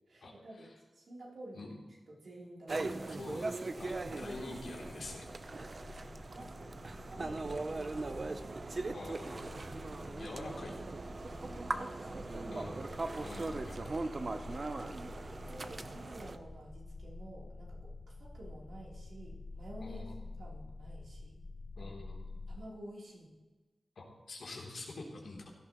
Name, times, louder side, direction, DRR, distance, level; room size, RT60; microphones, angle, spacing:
voice 1, 0.1-1.7 2.1-3.4 4.0-4.5 5.9-6.8 7.1-8.4 9.9-10.6 11.2-13.2 14.5-14.8 15.5-20.1 20.4-21.4 21.8-21.9 22.5-23.3, right 1 dB, 80° right, -4 dB, 3.5 m, -51 dB
sound 1, 2.7-16.4, right 3 dB, 50° right, 0.8 m, -40 dB
voice 2, 3.1-3.5 3.8-5.3 8.9-9.5 10.2-10.7 12.5-12.8 13.2-14.0 19.8-20.1 21.8-22.3 23.9-25.5, left 2 dB, 85° left, -2 dB, 3.2 m, -46 dB
sound 2, 3.7-22.5, left 2 dB, 55° left, 2.9 m, -49 dB
17.0 x 12.0 x 3.1 m, 1.2 s
wide cardioid pair, 70°, 0 cm